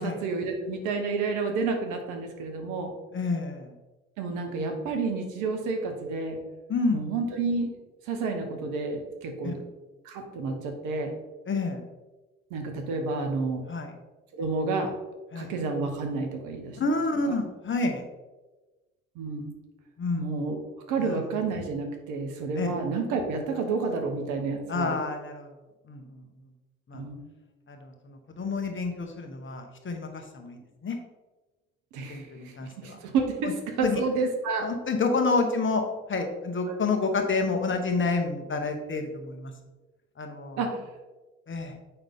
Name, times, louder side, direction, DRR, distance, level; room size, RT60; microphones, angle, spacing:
voice 1, 0.0-2.9 4.2-6.4 6.9-7.7 8.1-9.6 10.0-11.1 12.5-13.6 14.3-14.9 15.4-16.8 19.1-19.5 20.2-20.6 20.9-25.0 26.9-27.2 31.9-34.7 40.6-40.8, right 4 dB, 70° right, 4 dB, 1.1 m, -30 dB
voice 2, 3.1-3.7 6.7-7.0 9.4-9.5 11.5-11.8 13.7-13.9 15.3-15.5 16.7-18.0 20.0-20.3 21.0-21.2 22.5-22.7 24.7-25.5 25.9-26.2 26.9-27.0 27.7-31.0 32.1-33.0 33.4-33.5 33.8-34.0 34.6-35.8 36.1-39.5 40.2-40.7 41.5-41.7, left 3 dB, 40° left, 4 dB, 1.3 m, -29 dB
7.1 x 5.3 x 3.6 m, 1.2 s
hypercardioid pair, 45°, 31 cm